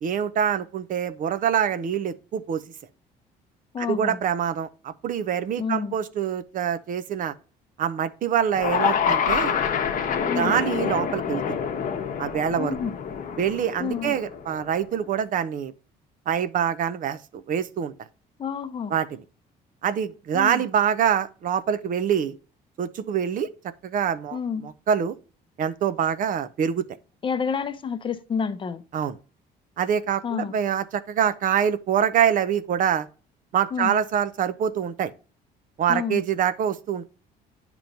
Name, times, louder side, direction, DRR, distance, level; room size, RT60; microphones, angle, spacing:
voice 1, 0.0-2.6 3.8-7.3 7.8-9.6 10.3-11.6 12.2-12.8 13.4-15.7 16.3-17.9 18.9-19.1 19.8-22.3 22.8-23.5 23.8-25.1 25.6-26.8 28.9-29.2 29.8-33.1 33.5-35.1 35.8-37.1, right 8 dB, 50° right, 0.6 m, -25 dB
voice 2, 3.7-4.2 5.6-6.0 10.3-10.6 12.6-13.0 13.8-14.1 18.4-18.9 20.3-20.6 24.3-24.6 27.2-28.8 30.2-30.6 33.7-34.0 35.9-36.2, left 6 dB, 30° left, 0.6 m, -29 dB
sound 1, 8.5-14.8, left 7 dB, 50° left, 0.9 m, -27 dB
8.9 x 3.0 x 5.2 m
cardioid pair, 110°, 17 cm